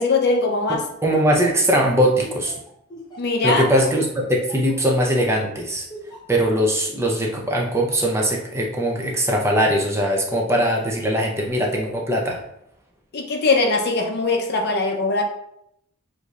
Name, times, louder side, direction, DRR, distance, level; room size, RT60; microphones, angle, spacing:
voice 1, 0.0-0.8 1.7-1.9 3.2-3.6 13.1-15.2, left 3 dB, 50° left, 3 dB, 0.6 m, -21 dB
voice 2, 1.0-2.5 3.4-5.9 6.3-12.4, equal, 10° right, 0 dB, 0.5 m, -21 dB
Laughter, 1.6-5.4 5.9-6.3, equal, 20° left, 0.8 m, -40 dB
6.4 x 2.6 x 2.4 m, 0.76 s
head